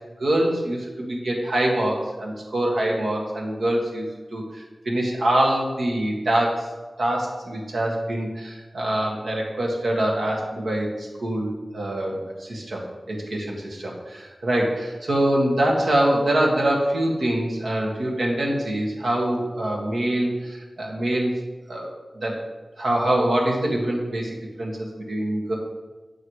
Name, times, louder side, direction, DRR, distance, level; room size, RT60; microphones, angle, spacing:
voice 1, 0.2-6.7 7.0-21.4 21.7-21.9 22.1-22.4 22.8-25.5, right 1 dB, 80° right, -1 dB, 1.6 m, -24 dB
9.4 x 4.7 x 4.8 m, 1.3 s
wide cardioid pair, 80°, 0 cm